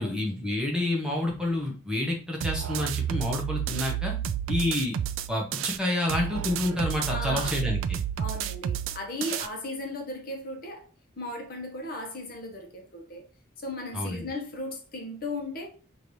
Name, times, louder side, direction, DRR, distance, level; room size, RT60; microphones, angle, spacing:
voice 1, 0.0-4.1 4.5-5.0 5.3-8.0 13.9-14.3, left 1 dB, 5° right, 0.7 m, -28 dB
sound 1, 2.4-5.8 6.1-9.5, right 9 dB, 85° right, 0.3 m, -31 dB
voice 2, 7.0-7.5 8.2-10.9 11.2-13.3 13.6-15.7, left 1 dB, 45° left, 0.9 m, -36 dB
5.0 x 2.6 x 3.1 m
head